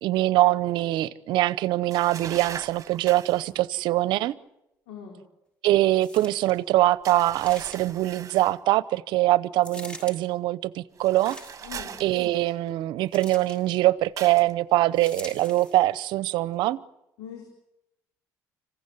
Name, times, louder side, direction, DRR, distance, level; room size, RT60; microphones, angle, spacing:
voice 1, 0.0-4.3 5.6-11.4 12.0-16.8, right 16 dB, 75° right, 0.8 m, -23 dB
sound 1, 1.9-3.5 7.0-8.6 11.0-12.7 14.2-14.5, right 7 dB, 45° right, 1.5 m, -40 dB
voice 2, 4.9-5.2 11.6-12.0 17.2-17.5, left 8 dB, 85° left, 4.6 m, -41 dB
sound 2, 6.0-6.6 7.4-8.1 9.6-10.2 11.1-11.8 13.1-13.6 15.0-15.8 16.5-16.6, equal, 15° left, 7.4 m, -44 dB
26.5 x 16.0 x 9.7 m
supercardioid pair, 75°, 8 cm